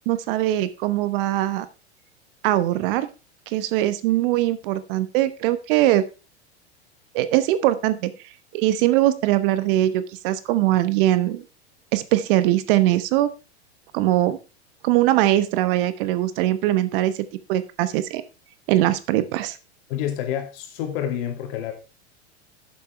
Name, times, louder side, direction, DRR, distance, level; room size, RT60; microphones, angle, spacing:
voice 1, 0.1-1.7 2.4-3.1 3.5-6.1 7.1-8.1 8.5-11.4 11.9-13.3 13.9-14.4 14.8-18.2 18.7-19.6, right 14 dB, 55° right, 14 dB, 1.0 m, -21 dB
voice 2, 19.9-21.7, left 10 dB, 60° left, 5 dB, 2.5 m, -28 dB
11.5 x 7.3 x 3.3 m, 0.30 s
hypercardioid pair, 95°, 33 cm